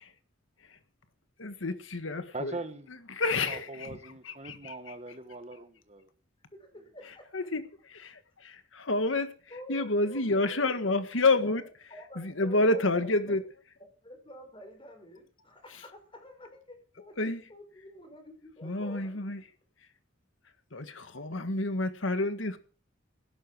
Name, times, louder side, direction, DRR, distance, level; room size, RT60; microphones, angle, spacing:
voice 1, 1.4-2.5 3.1-3.9 4.3-4.7 7.3-7.6 7.9-9.3 9.7-11.6 12.2-13.4 17.2-17.4 18.6-19.4 20.7-22.6, left 2 dB, 85° left, 1.7 m, -29 dB
voice 2, 2.3-3.0 3.5-6.1, right 2 dB, 35° right, 1.5 m, -41 dB
voice 3, 6.6-7.5 9.1-10.6 11.4-11.5 11.9-13.4 14.0-19.3, left 1 dB, 25° left, 5.3 m, -48 dB
16.5 x 12.0 x 6.2 m
head